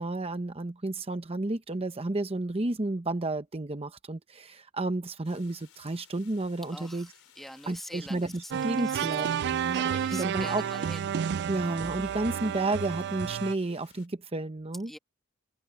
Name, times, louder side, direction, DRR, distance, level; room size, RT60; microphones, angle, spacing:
voice 1, 0.0-7.1 7.7-10.6 11.5-14.9, right 2 dB, 30° right, 0.8 m, -32 dB
sound 1, 5.2-14.1, left 10 dB, 85° left, 4.1 m, -59 dB
voice 2, 6.7-7.1 7.3-8.5 8.8-9.1 9.7-11.1 14.9-15.0, equal, ahead, 1.6 m, -44 dB
sound 2, 8.5-13.5, right 8 dB, 55° right, 0.3 m, -31 dB
open air
head